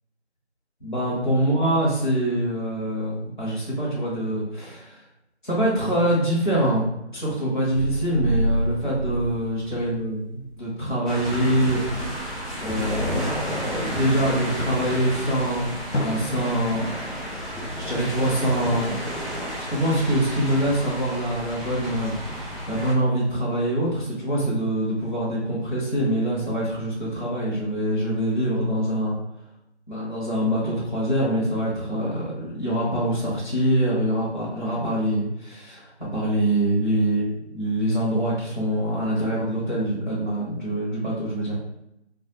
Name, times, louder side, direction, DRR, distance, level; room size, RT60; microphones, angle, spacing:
voice 1, 0.8-5.0 5.4-6.8 7.1-12.1 12.6-16.8 17.4-19.4 19.7-22.4 22.7-29.2 29.9-41.6, right 1 dB, 45° left, -7 dB, 0.7 m, -25 dB
sound 1, 7.7-10.3 10.6-10.7, right 1 dB, 50° right, 0.5 m, -27 dB
sound 2, 11.1-22.9, equal, ahead, 0.4 m, -32 dB
Drum, 15.9-18.6, left 1 dB, 85° left, 0.6 m, -33 dB
2.2 x 2.1 x 2.7 m, 0.84 s
figure-of-eight pair, 175°, 34 cm